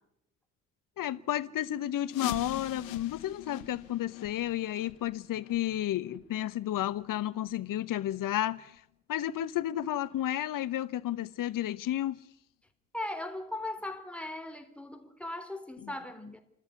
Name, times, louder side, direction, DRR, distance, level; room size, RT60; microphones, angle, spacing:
voice 1, 1.0-8.8 9.1-12.2, left 12 dB, 50° left, 1.1 m, -32 dB
sound 1, 2.1-7.7 8.0-8.1 8.7-8.8 9.4-9.5 10.0-10.1, left 15 dB, 80° left, 1.1 m, -43 dB
voice 2, 12.9-16.4, left 1 dB, 5° left, 3.4 m, -38 dB
29.0 x 13.5 x 9.6 m
hypercardioid pair, 45°, 40 cm